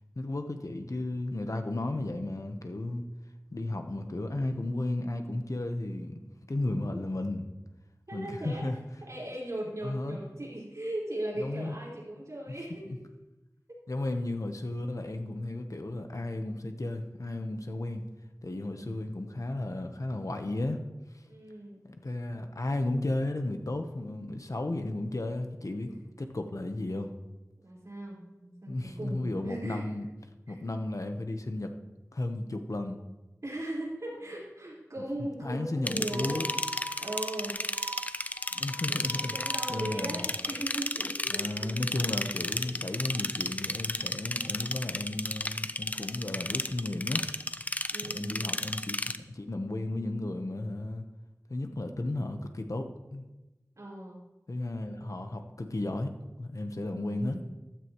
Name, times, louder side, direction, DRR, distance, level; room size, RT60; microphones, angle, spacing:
voice 1, 0.2-3.0 3.5-6.2 6.5-7.5 8.1-8.7 9.8-10.2 11.4-11.8 12.8-13.0 13.9-18.0 18.4-20.8 21.8-27.1 28.7-30.1 30.5-31.7 32.1-33.0 35.2-36.5 38.5-39.3 39.7-40.3 41.3-47.3 48.1-51.0 51.5-53.2 54.5-56.1 56.4-57.4, left 2 dB, 65° left, 6 dB, 1.1 m, -34 dB
voice 2, 8.1-8.7 9.0-13.0 18.6-19.0 21.3-21.8 25.8-26.0 27.6-30.1 30.5-30.6 33.4-36.6 37.0-37.6 38.9-41.7 47.9-48.4 53.8-54.2 56.9-57.5, right 1 dB, 60° right, -6 dB, 4.7 m, -38 dB
sound 1, 35.9-49.2, left 1 dB, 25° left, 0.5 m, -33 dB
Wind instrument woodwind instrument, 36.1-40.2, right 1 dB, 35° right, 4.8 m, -42 dB
15.0 x 12.5 x 3.1 m, 1.1 s
wide cardioid pair, 45°, 6 cm